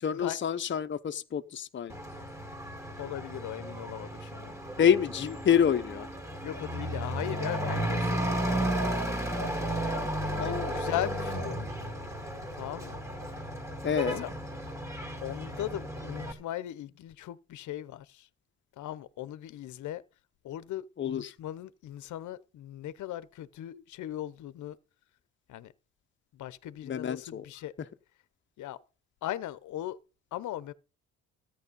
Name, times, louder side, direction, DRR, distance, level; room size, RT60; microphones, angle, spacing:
voice 1, 0.0-1.9 4.8-6.1 10.4-10.9 13.8-14.2 21.0-21.3 26.8-27.4, left 8 dB, 40° left, 0.8 m, -27 dB
Truck / Accelerating revving vroom, 1.9-16.3, right 1 dB, 10° right, 2.6 m, -34 dB
voice 2, 3.0-4.6 6.4-8.6 10.4-11.7 12.6-13.0 14.2-14.3 15.2-18.3 18.8-20.0 20.4-24.8 25.5-25.7 26.3-27.7 28.6-28.8 29.2-30.0 30.3-30.7, left 13 dB, 75° left, 0.8 m, -38 dB
13.5 x 9.2 x 5.3 m
cardioid pair, 90°, 30 cm